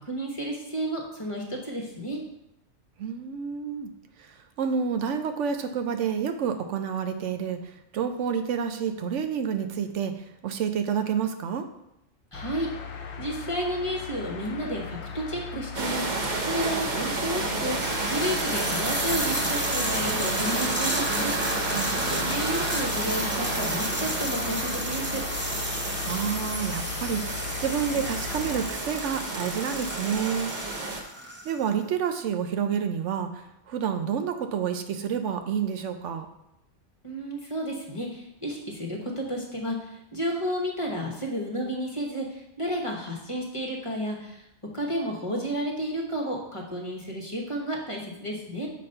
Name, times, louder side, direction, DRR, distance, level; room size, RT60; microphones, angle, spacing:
voice 1, 0.0-2.2 12.3-12.7 13.2-21.7 22.1-25.2 37.0-44.4 44.7-48.7, equal, 25° left, 0 dB, 1.1 m, -32 dB
voice 2, 3.0-3.9 4.2-11.7 21.7-22.4 26.0-30.6 31.4-36.3, right 7 dB, 75° right, 7 dB, 1.0 m, -29 dB
sound 1, 12.3-28.7, left 6 dB, 65° left, 1.0 m, -38 dB
sound 2, 14.4-14.5 15.5-15.6 17.6-31.8, equal, 15° right, 0.5 m, -33 dB
sound 3, 15.7-31.0, right 3 dB, 40° right, 0.9 m, -31 dB
6.5 x 4.1 x 5.4 m, 0.83 s
omnidirectional pair, 1.3 m